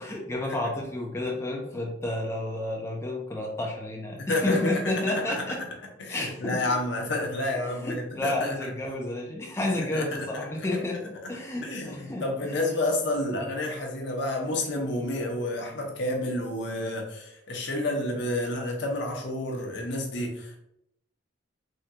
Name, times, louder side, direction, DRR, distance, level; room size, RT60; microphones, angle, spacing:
voice 1, 0.0-5.6 6.1-6.6 7.6-12.6 13.4-13.7, left 1 dB, 15° left, -2 dB, 0.4 m, -31 dB
voice 2, 4.2-5.6 6.0-8.7 9.9-10.1 10.3-10.8 11.6-20.6, left 1 dB, 65° left, 1 dB, 0.7 m, -30 dB
3.5 x 2.3 x 2.8 m, 0.78 s
head